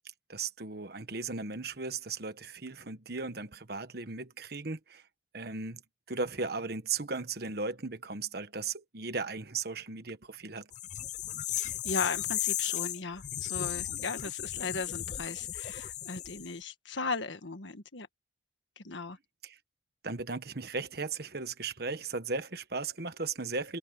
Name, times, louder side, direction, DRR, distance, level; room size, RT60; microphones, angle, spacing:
voice 1, 0.3-5.0 5.3-5.8 6.1-10.7 19.4-19.6 20.0-23.8, right 4 dB, 60° right, 1.4 m, -36 dB
sound 1, 10.7-16.5, left 12 dB, 40° left, 0.4 m, -35 dB
voice 2, 11.6-18.1 18.8-19.2, left 4 dB, 90° left, 1.6 m, -37 dB
head